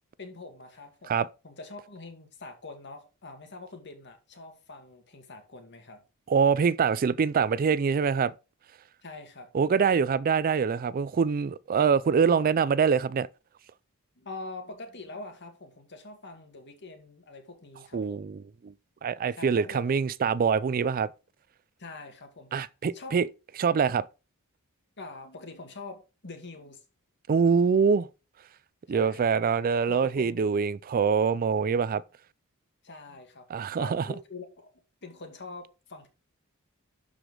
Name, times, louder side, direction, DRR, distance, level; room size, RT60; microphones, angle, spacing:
voice 1, 0.2-6.0 9.0-9.5 14.2-18.3 19.3-19.8 21.8-22.6 22.9-23.2 25.0-26.8 28.9-29.3 29.9-30.5 32.8-34.7 35.0-36.1, left 3 dB, 55° left, 2.3 m, -44 dB
voice 2, 6.3-8.3 9.5-13.3 17.9-18.7 19.0-21.1 22.5-23.3 23.6-24.0 27.3-28.1 28.9-32.0 33.5-34.0, right 6 dB, 40° right, 0.4 m, -24 dB
12.0 x 5.0 x 3.8 m
head